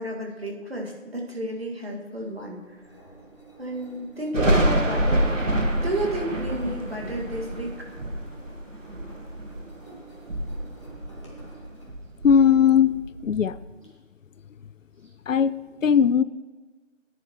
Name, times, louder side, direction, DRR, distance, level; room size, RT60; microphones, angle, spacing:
voice 1, 0.0-2.8 3.6-5.3 5.8-7.9, right 1 dB, 50° right, -1 dB, 2.1 m, -31 dB
Engine, 2.2-13.9, right 3 dB, 25° left, 1.7 m, -49 dB
Thunder, 4.3-9.8 10.1-11.6 11.9-13.6, right 1 dB, 80° right, 1.6 m, -27 dB
voice 2, 12.2-13.6 15.3-16.2, left 7 dB, 80° left, 17 dB, 0.5 m, -19 dB
14.5 x 10.0 x 3.1 m, 1.3 s
figure-of-eight pair, 180°, 38 cm